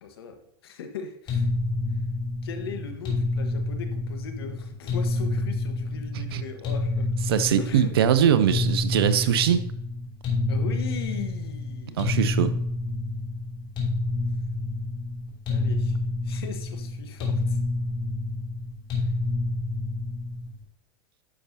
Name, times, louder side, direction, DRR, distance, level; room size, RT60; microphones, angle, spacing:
voice 1, 0.0-1.5 2.4-7.1 7.6-7.9 10.5-12.3 15.5-16.0 16.2-17.6 19.0-19.1, left 6 dB, 75° left, 6 dB, 1.3 m, -39 dB
sound 1, 1.3-20.6, left 2 dB, 40° left, 3.0 m, -28 dB
voice 2, 7.3-9.6 12.0-12.5, right 9 dB, 75° right, 12 dB, 0.7 m, -22 dB
9.7 x 6.9 x 2.7 m, 0.71 s
hypercardioid pair, 95°, 13 cm